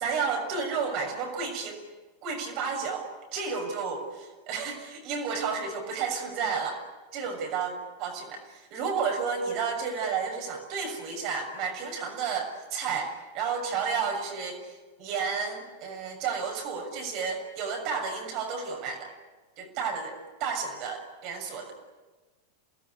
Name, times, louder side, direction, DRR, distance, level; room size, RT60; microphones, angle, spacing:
voice 1, 0.0-1.8 2.2-6.8 7.1-7.7 8.0-19.1 19.6-20.1 20.4-21.7, right 5 dB, 40° right, 4 dB, 6.6 m, -32 dB
29.0 x 20.0 x 9.7 m, 1.3 s
figure-of-eight pair, 90°, 0 cm